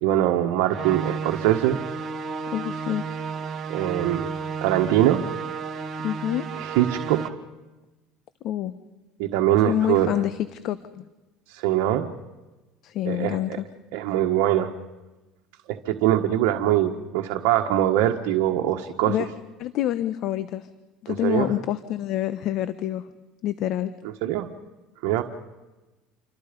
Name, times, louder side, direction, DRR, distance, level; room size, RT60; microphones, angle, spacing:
voice 1, 0.0-1.8 3.7-4.3 4.6-5.2 6.6-7.2 9.2-10.1 11.5-12.1 13.0-13.6 13.9-14.7 15.7-19.2 21.1-21.5 24.2-24.5 25.0-25.2, right 12 dB, 75° right, 3 dB, 1.5 m, -22 dB
sound 1, 0.7-7.3, right 5 dB, 40° right, 2.1 m, -32 dB
voice 2, 2.5-3.0 6.0-6.5 8.4-8.7 9.7-10.4 10.6-11.0 12.8-13.6 19.1-19.3 19.6-20.7 21.0-23.0 23.4-23.9, left 12 dB, 55° left, 13 dB, 1.0 m, -27 dB
28.5 x 25.0 x 5.3 m, 1.1 s
supercardioid pair, 115°, 0 cm